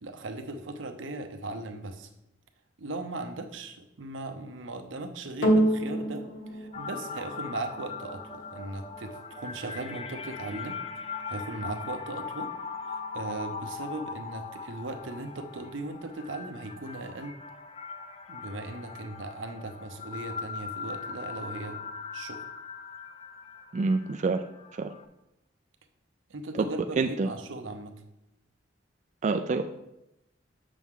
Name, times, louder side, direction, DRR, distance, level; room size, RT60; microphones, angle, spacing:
voice 1, 0.0-2.1 2.8-12.5 12.9-17.4 18.3-21.8 22.1-22.4 26.3-28.0, right 2 dB, 85° right, 6 dB, 0.8 m, -38 dB
sound 1, 5.4-14.0 14.7-14.8, right 1 dB, 85° left, 1.2 m, -32 dB
sound 2, 6.7-25.0, left 5 dB, 30° left, 0.5 m, -40 dB
voice 2, 23.7-24.4 24.8-24.9 26.5-26.7 27.0-27.3 29.2-29.6, right 4 dB, 40° right, 6 dB, 0.3 m, -26 dB
6.9 x 6.2 x 3.7 m, 0.88 s
head